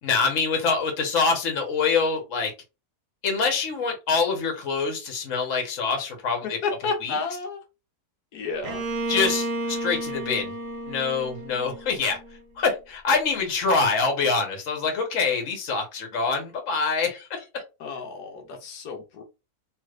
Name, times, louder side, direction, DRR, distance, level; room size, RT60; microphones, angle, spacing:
voice 1, 0.0-2.5 3.2-6.6 7.0-7.1 9.1-10.5 10.9-12.2 12.6-17.6, left 4 dB, 55° left, 3 dB, 1.3 m, -25 dB
voice 2, 6.6-7.6 8.3-8.9 17.8-19.2, left 4 dB, 85° left, 3 dB, 1.3 m, -31 dB
Bowed string instrument, 8.6-12.4, right 1 dB, 65° right, 1.2 m, -32 dB
3.1 x 3.0 x 2.4 m, 0.27 s
omnidirectional pair, 1.7 m